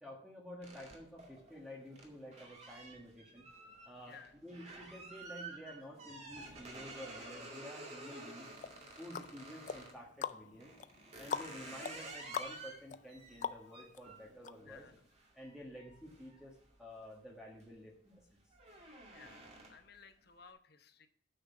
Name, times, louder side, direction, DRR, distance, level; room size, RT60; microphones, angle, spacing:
voice 1, 0.0-3.4 3.8-8.5 9.0-10.7 11.2-14.8 15.3-18.4, equal, 5° right, -3 dB, 1.6 m, -51 dB
sound 1, 0.6-10.0 10.6-17.0 17.4-17.8 18.1-20.0, right 2 dB, 35° right, 2.2 m, -51 dB
sound 2, 8.6-14.0 14.4-14.5, left 6 dB, 40° left, 0.4 m, -43 dB
voice 2, 14.6-14.9 19.1-21.1, left 6 dB, 55° left, 8 dB, 0.9 m, -58 dB
8.8 x 6.4 x 6.0 m, 0.64 s
head